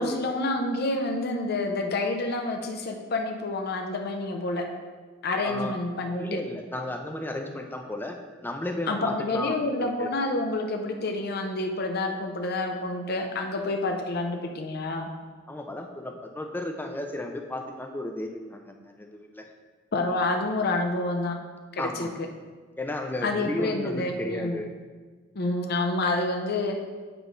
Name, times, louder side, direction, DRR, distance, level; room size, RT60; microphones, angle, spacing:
voice 1, 0.0-4.7 5.2-6.4 8.9-15.1 19.9-21.4 21.7-22.3 23.2-24.6 25.3-26.8, left 2 dB, 55° left, 3 dB, 0.6 m, -28 dB
voice 2, 5.4-5.8 6.2-10.1 15.5-19.5 21.8-22.1 22.8-24.7, left 1 dB, 10° left, 4 dB, 0.5 m, -34 dB
8.8 x 3.1 x 5.1 m, 1.4 s
head